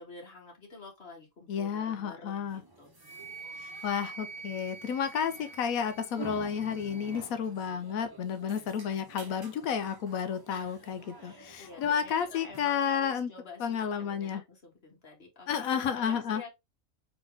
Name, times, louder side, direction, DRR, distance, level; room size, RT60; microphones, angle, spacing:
voice 1, 0.0-2.9 10.5-10.9 11.2-16.5, left 3 dB, 45° left, 1.9 m, -49 dB
voice 2, 1.5-2.6 3.5-13.3 13.6-14.4 15.5-16.4, left 7 dB, 85° left, 1.1 m, -31 dB
sound 1, 2.5-12.7, right 3 dB, 20° right, 0.9 m, -50 dB
Wind instrument woodwind instrument, 3.0-7.2, right 4 dB, 10° left, 1.0 m, -46 dB
3.9 x 3.5 x 3.4 m
omnidirectional pair, 1.4 m